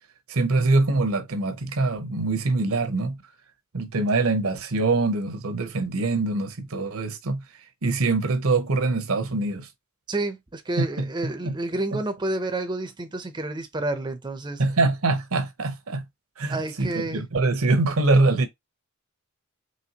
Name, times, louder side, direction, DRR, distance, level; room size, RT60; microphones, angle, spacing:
voice 1, 0.3-3.2 3.7-7.4 7.8-9.7 10.8-11.5 11.9-12.0 14.6-16.0 16.4-18.5, right 3 dB, 70° right, 0.8 m, -24 dB
voice 2, 10.1-14.6 16.5-17.2, right 2 dB, 20° right, 0.6 m, -29 dB
4.3 x 3.1 x 2.8 m
head